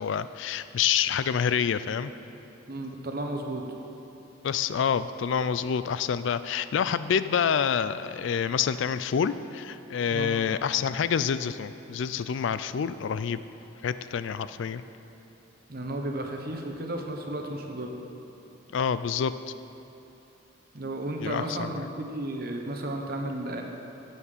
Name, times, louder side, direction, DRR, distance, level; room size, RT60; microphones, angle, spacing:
voice 1, 0.0-2.1 4.4-13.4 13.8-14.8 18.7-19.3 21.2-21.7, left 7 dB, 70° left, 14 dB, 0.3 m, -27 dB
voice 2, 2.7-3.6 10.1-10.3 15.7-17.9 20.7-23.6, right 1 dB, 50° right, 2 dB, 1.1 m, -33 dB
10.0 x 7.2 x 7.3 m, 2.9 s
head